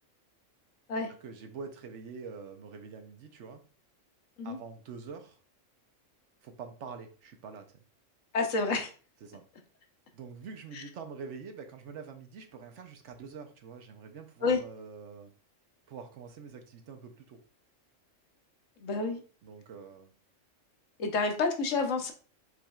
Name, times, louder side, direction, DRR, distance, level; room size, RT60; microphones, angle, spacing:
voice 1, 1.2-3.6 4.4-5.4 6.4-7.7 9.2-9.4 10.1-15.3 15.9-17.4 19.4-20.1, right 5 dB, 70° right, 6 dB, 1.0 m, -45 dB
voice 2, 8.3-8.9 10.7-10.8 14.4-14.6 18.8-19.2 21.0-22.1, left 4 dB, 75° left, 4 dB, 1.2 m, -29 dB
4.8 x 4.3 x 2.3 m, 0.38 s
omnidirectional pair, 1.3 m